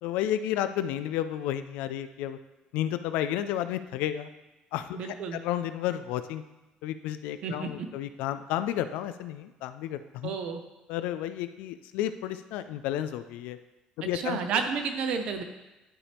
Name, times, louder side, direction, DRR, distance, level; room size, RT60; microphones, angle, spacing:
voice 1, 0.0-2.4 2.7-4.3 4.7-5.0 5.3-6.4 6.8-10.3 10.9-13.6 14.0-14.4, left 11 dB, 80° left, 11 dB, 0.4 m, -31 dB
voice 2, 4.9-5.4 7.4-7.9 10.2-10.6 14.0-15.4, right 6 dB, 50° right, 6 dB, 0.7 m, -31 dB
11.0 x 4.4 x 3.5 m, 1.0 s
cardioid pair, 170°, 2 cm